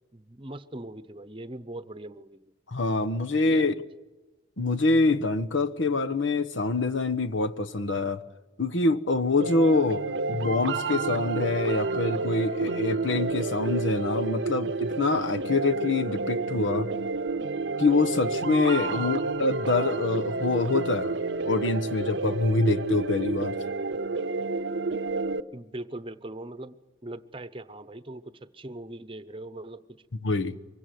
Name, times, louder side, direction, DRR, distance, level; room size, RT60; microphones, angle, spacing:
voice 1, 0.1-2.5 3.5-3.7 18.9-19.3 25.5-26.8 27.0-29.8, right 1 dB, 25° right, 0.8 m, -40 dB
voice 2, 2.7-3.7 4.6-8.2 8.6-10.0 10.3-16.9 17.8-21.2 21.4-23.6 30.2-30.5, left 3 dB, 85° left, 1.2 m, -25 dB
sound 1, 9.4-25.4, right 3 dB, 70° right, 0.7 m, -30 dB
24.0 x 17.0 x 9.3 m
head